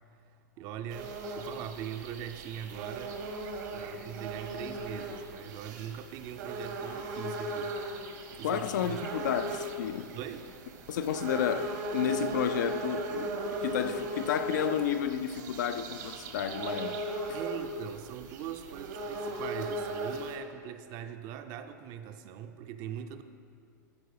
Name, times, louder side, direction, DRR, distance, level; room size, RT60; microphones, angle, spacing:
voice 1, 0.6-3.2 3.7-7.8 8.4-9.0 10.1-10.5 17.3-23.2, right 9 dB, 40° right, 0.5 m, -41 dB
sound 1, 0.9-20.3, right 2 dB, 65° right, 1.2 m, -38 dB
voice 2, 8.4-10.1 10.9-17.0 17.3-17.4, left 9 dB, 75° left, 0.5 m, -31 dB
12.5 x 4.6 x 4.9 m
hypercardioid pair, 125°, 10 cm